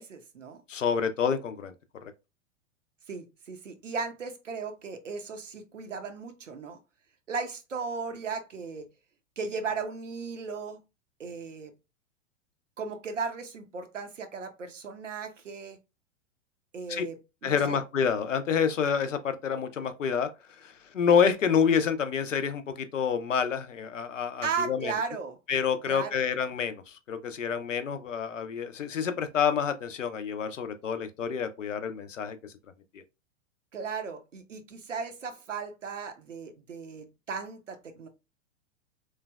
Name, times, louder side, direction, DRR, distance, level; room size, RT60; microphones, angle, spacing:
voice 1, 0.0-0.6 3.1-6.8 7.3-8.9 9.4-10.8 11.2-11.7 12.8-15.8 16.7-17.8 24.4-25.4 25.9-26.2 33.7-38.1, right 5 dB, 90° right, 0.6 m, -36 dB
voice 2, 0.7-1.7 2.0-2.1 16.9-17.0 17.4-24.9 25.5-32.5 32.9-33.0, left 7 dB, 85° left, 0.5 m, -28 dB
3.1 x 2.2 x 2.2 m
figure-of-eight pair, 100°, 37 cm